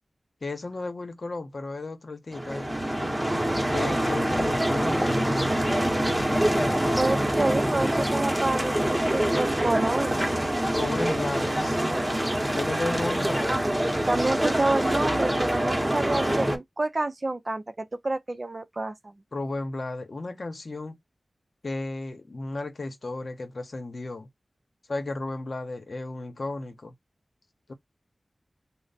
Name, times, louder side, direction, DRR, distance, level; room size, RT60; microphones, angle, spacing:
voice 1, 0.4-2.7 3.7-5.1 6.5-7.2 10.7-11.8 12.5-13.6 19.3-21.0 21.6-24.3 24.9-26.9 27.7-27.8, left 2 dB, 65° left, 0.8 m, -34 dB
sound 1, 2.3-16.6, right 1 dB, 20° right, 0.9 m, -25 dB
voice 2, 7.0-10.2 14.1-19.1, right 2 dB, 45° right, 0.4 m, -28 dB
3.1 x 2.1 x 4.0 m
wide cardioid pair, 55°, 0 cm